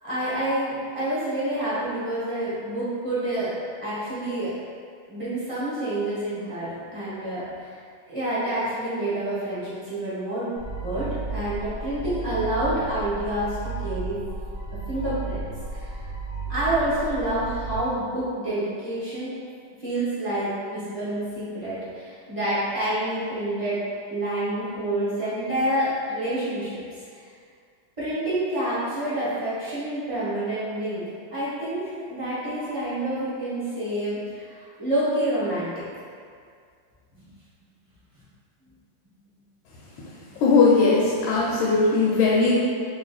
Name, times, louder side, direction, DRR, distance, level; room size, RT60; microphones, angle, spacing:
voice 1, 0.0-3.5 3.8-4.5 5.1-7.7 8.1-10.5 10.8-14.2 14.9-16.0 16.5-19.3 19.8-23.8 24.1-27.0 28.0-31.0 31.3-35.7 37.1-37.3, right 1 dB, 25° right, -12 dB, 0.9 m, -28 dB
sound 1, 10.6-17.8, right 3 dB, 50° right, 0.6 m, -33 dB
voice 2, 40.4-42.5, left 4 dB, 80° left, -4 dB, 1.3 m, -19 dB
3.1 x 3.0 x 4.0 m, 2.2 s
omnidirectional pair, 2.1 m